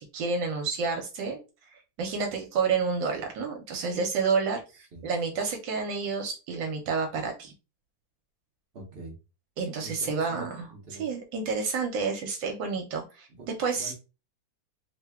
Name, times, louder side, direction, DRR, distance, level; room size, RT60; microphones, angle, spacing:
voice 1, 0.0-1.4 1.7-4.6 5.0-7.5 9.6-10.7 11.0-13.3 13.6-13.9, right 5 dB, 75° right, 3 dB, 1.3 m, -29 dB
voice 2, 8.7-9.2 9.8-11.1 13.3-13.5 13.7-13.9, right 2 dB, 50° right, 0 dB, 0.7 m, -44 dB
3.3 x 2.1 x 3.4 m, 0.31 s
omnidirectional pair, 2.1 m